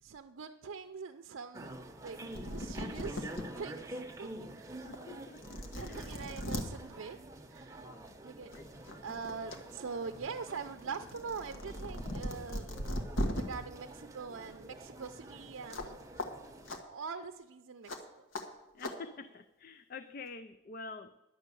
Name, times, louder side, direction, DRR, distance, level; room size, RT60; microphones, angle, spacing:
voice 1, 0.0-2.2 2.5-5.0 5.8-7.2 7.5-7.9 8.2-8.6 8.8-12.7 13.3-16.0 16.9-17.9, right 5 dB, 85° right, 0.5 m, -43 dB
sound 1, 1.5-16.8, right 1 dB, 15° right, 0.7 m, -48 dB
sound 2, 2.1-2.2 2.3-3.4 4.0-4.1 4.9-5.0 5.4-6.6 7.9-8.1 8.5-9.6 9.9-13.4 15.7-15.9 16.2-16.3 16.7-16.8 17.9-18.0 18.3-18.4 18.8-18.9, equal, 80° left, 1.4 m, -38 dB
voice 2, 4.8-6.1 8.1-8.2 8.6-8.7 18.7-21.1, left 4 dB, 45° left, 0.4 m, -47 dB
11.0 x 6.4 x 8.3 m
head